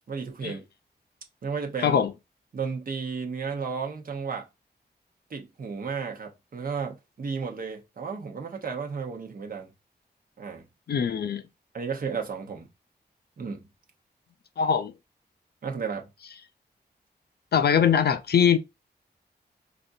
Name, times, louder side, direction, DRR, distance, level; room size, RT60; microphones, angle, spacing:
voice 1, 0.1-0.6 1.4-2.0 2.5-4.5 5.3-9.7 10.4-10.7 11.7-12.7 13.4-13.6 15.6-16.1, right 5 dB, 55° right, 0.8 m, -33 dB
voice 2, 1.8-2.1 10.9-11.4 14.6-14.9 17.5-18.6, left 7 dB, 70° left, 0.4 m, -22 dB
5.0 x 2.5 x 2.6 m
wide cardioid pair, 125°, 17 cm